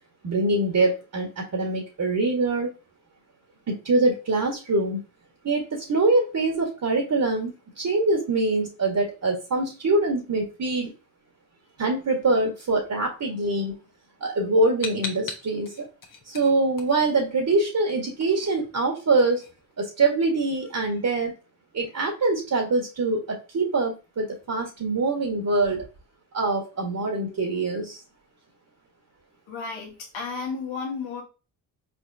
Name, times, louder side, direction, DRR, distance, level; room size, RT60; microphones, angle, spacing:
voice 1, 0.2-2.7 3.7-5.0 5.4-10.9 11.8-13.8 14.2-15.9 16.3-19.4 19.8-21.3 21.7-25.9 26.3-28.0, right 2 dB, 45° right, 1 dB, 1.6 m, -24 dB
sound 1, 14.8-17.5 17.8-20.2, left 4 dB, 45° left, 1.2 m, -39 dB
voice 2, 29.5-31.2, left 5 dB, 80° left, 1 dB, 1.5 m, -33 dB
4.6 x 3.7 x 2.7 m, 0.31 s
supercardioid pair, 50°, 44 cm